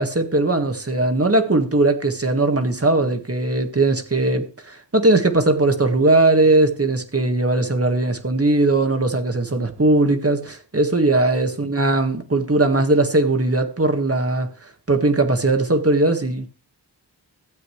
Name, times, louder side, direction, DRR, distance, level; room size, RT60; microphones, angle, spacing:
voice 1, 0.0-16.5, right 2 dB, 35° right, 1.6 m, -19 dB
13.5 x 7.8 x 3.1 m
wide cardioid pair, 45°, 41 cm